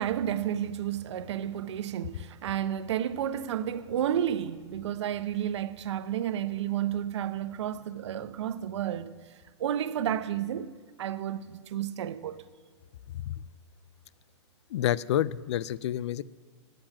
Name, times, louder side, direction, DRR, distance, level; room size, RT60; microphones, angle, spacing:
voice 1, 0.0-9.1 9.6-12.4, right 10 dB, 70° right, 0.7 m, -31 dB
voice 2, 14.7-16.2, left 11 dB, 70° left, 0.4 m, -28 dB
10.0 x 7.8 x 8.8 m
hypercardioid pair, 135°, 15 cm